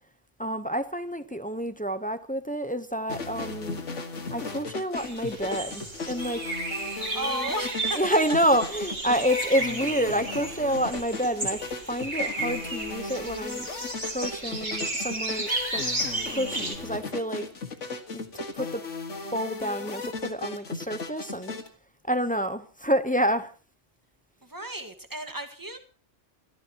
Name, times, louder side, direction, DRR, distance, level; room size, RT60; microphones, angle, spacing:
voice 1, 0.4-3.8 4.3-6.4 7.9-13.7 14.0-15.8 16.3-17.5 18.1-18.8 19.3-21.6 22.1-23.5, equal, 10° left, 0.7 m, -28 dB
sound 1, 3.1-21.7, left 4 dB, 75° left, 2.1 m, -36 dB
sound 2, 5.0-16.7, right 2 dB, 35° right, 2.6 m, -33 dB
voice 2, 6.9-8.0 24.4-25.8, right 1 dB, 15° right, 1.7 m, -34 dB
28.5 x 13.5 x 3.0 m
omnidirectional pair, 1.3 m